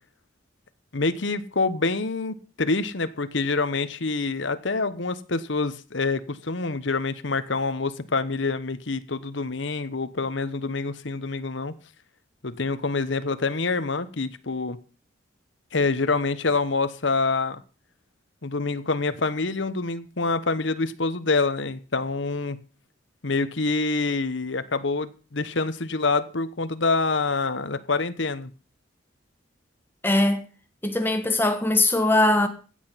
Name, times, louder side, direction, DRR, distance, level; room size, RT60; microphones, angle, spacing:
voice 1, 0.9-11.7 12.4-14.8 15.7-17.6 18.4-22.6 23.2-28.5, left 3 dB, 65° left, 1.1 m, -26 dB
voice 2, 30.0-30.4 30.8-32.5, left 2 dB, 10° left, 1.5 m, -21 dB
16.0 x 8.2 x 5.7 m
head